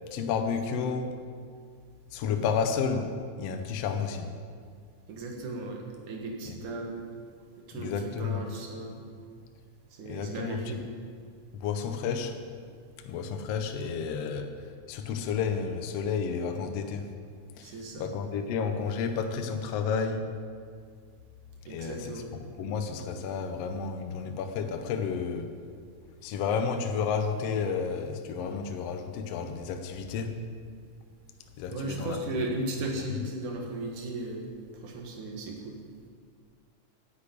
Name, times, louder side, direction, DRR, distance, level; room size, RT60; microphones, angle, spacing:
voice 1, 0.1-1.2 2.1-3.1 3.4-4.3 6.5-6.6 7.7-8.5 10.1-10.8 11.5-12.4 13.1-14.5 14.9-17.1 17.6-20.3 21.7-25.5 26.2-30.3 31.6-32.5, left 6 dB, 70° left, 6 dB, 1.6 m, -31 dB
voice 2, 5.1-7.0 7.7-9.0 9.9-10.9 17.6-18.1 21.7-22.4 31.7-34.5 34.8-35.8, right 2 dB, 75° right, 1 dB, 3.0 m, -36 dB
10.0 x 8.5 x 8.6 m, 2.1 s
omnidirectional pair, 3.6 m